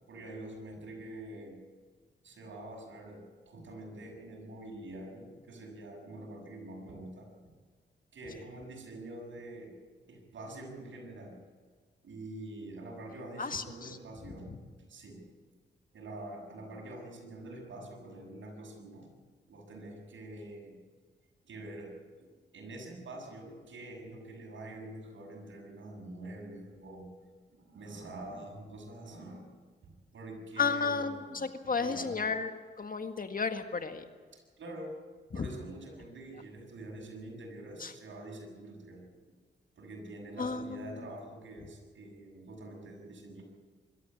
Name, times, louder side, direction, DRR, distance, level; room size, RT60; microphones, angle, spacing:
voice 1, 0.1-1.6 2.2-7.3 8.1-9.8 10.1-11.4 12.0-14.5 14.9-15.3 15.9-19.1 19.5-20.8 21.4-27.1 27.5-29.5 29.8-31.4 31.8-32.3 34.3-35.0 35.3-39.0 39.8-43.4, right 1 dB, 75° right, 1 dB, 7.0 m, -46 dB
voice 2, 13.4-13.9 30.6-34.0 35.3-35.5 37.8-37.9 40.4-40.8, left 5 dB, 45° left, 7 dB, 1.8 m, -33 dB
24.5 x 13.5 x 8.8 m, 1.5 s
cardioid pair, 60°, 20 cm